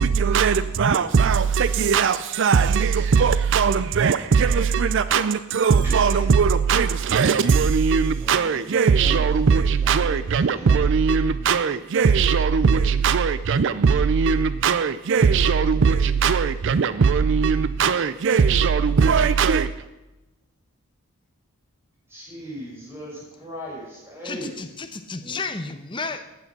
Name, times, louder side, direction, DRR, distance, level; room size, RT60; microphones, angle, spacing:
voice 1, 0.0-19.7, right 6 dB, 55° right, 0.4 m, -20 dB
voice 2, 5.8-6.3 8.2-9.3 9.8-10.3 10.5-10.8 22.1-24.5 25.2-25.4, equal, 10° right, 6.1 m, -38 dB
voice 3, 24.2-26.3, left 4 dB, 20° left, 0.9 m, -32 dB
14.5 x 9.6 x 6.0 m
head